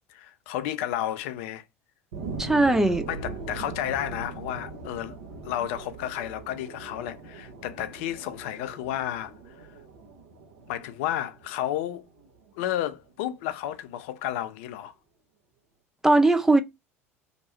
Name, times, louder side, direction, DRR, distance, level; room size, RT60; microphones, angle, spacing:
voice 1, 0.1-1.6 3.1-5.2 5.4-9.3 10.7-12.1 12.6-14.9, left 12 dB, 55° left, 0.4 m, -32 dB
sound 1, 2.1-13.1 13.6-13.7, right 4 dB, 65° right, 0.9 m, -41 dB
voice 2, 2.4-3.1 16.0-16.6, right 2 dB, 5° right, 0.4 m, -19 dB
2.8 x 2.2 x 4.1 m
figure-of-eight pair, 70°, 8 cm